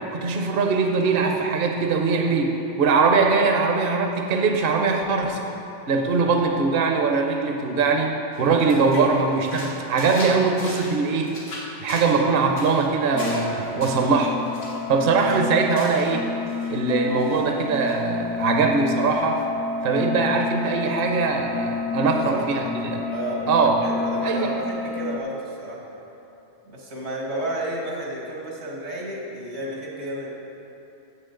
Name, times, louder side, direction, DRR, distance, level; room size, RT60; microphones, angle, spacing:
voice 1, 0.1-5.5 5.9-11.3 11.8-14.4 14.9-16.3 16.7-19.4 19.8-23.1 23.5-23.8 24.2-24.5, right 4 dB, 55° right, 3 dB, 0.9 m, -21 dB
sound 1, 8.3-16.2 16.4-16.8 17.2-17.9, left 1 dB, 85° left, 1.8 m, -39 dB
sound 2, 13.1-25.2, left 4 dB, 65° left, 0.8 m, -30 dB
voice 2, 22.0-22.5 23.1-23.5 23.8-25.8 26.6-30.3, right 1 dB, 85° right, -3 dB, 2.2 m, -32 dB
14.5 x 7.3 x 3.8 m, 2.9 s
omnidirectional pair, 1.2 m